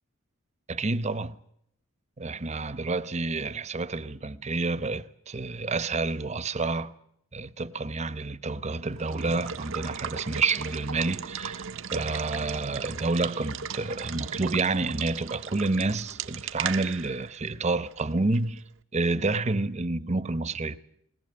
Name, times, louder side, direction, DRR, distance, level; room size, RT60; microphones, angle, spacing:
voice 1, 0.7-1.4 2.2-6.9 7.3-18.6 18.9-20.8, right 3 dB, 30° right, 0.8 m, -29 dB
Water / Water tap faucet / Liquid, 9.0-18.6, right 7 dB, 65° right, 0.8 m, -37 dB
20.5 x 20.5 x 8.7 m
head